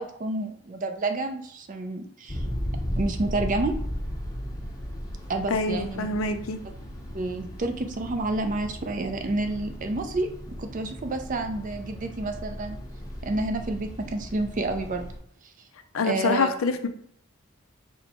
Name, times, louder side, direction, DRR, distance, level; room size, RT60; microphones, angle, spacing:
voice 1, 0.0-2.5 3.0-3.8 5.3-6.1 7.1-12.8 13.2-15.0 16.0-16.5, right 2 dB, 40° right, 6 dB, 0.4 m, -29 dB
sound 1, 2.3-15.2, equal, 15° left, 0.6 m, -36 dB
voice 2, 5.5-6.6 15.9-16.9, left 3 dB, 75° left, 8 dB, 0.5 m, -26 dB
4.4 x 2.1 x 4.1 m, 0.65 s
head